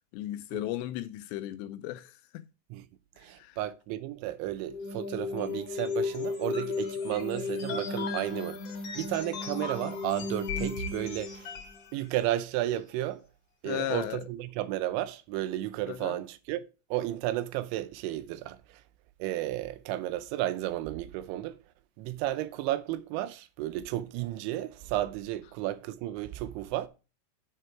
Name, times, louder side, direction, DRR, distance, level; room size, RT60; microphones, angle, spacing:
voice 1, 0.0-2.5 3.4-3.6 13.7-14.2 15.9-16.2, left 13 dB, 85° left, 2.6 m, -36 dB
voice 2, 3.2-8.6 9.0-11.5 11.9-13.2 13.6-16.6 16.9-18.8 19.2-21.6 22.0-26.9, right 14 dB, 90° right, 3.1 m, -33 dB
sound 1, 4.7-11.8, left 4 dB, 55° left, 1.7 m, -34 dB
7.5 x 6.6 x 4.5 m
omnidirectional pair, 5.2 m